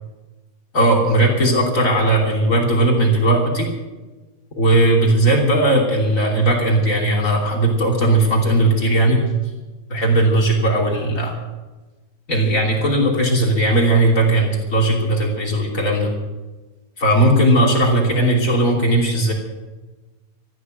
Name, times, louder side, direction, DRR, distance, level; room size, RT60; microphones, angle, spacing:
voice 1, 0.7-3.7 4.6-9.2 9.9-11.3 12.3-16.1 17.0-19.3, right 1 dB, 25° left, -1 dB, 2.8 m, -17 dB
14.0 x 11.5 x 7.6 m, 1.2 s
omnidirectional pair, 4.3 m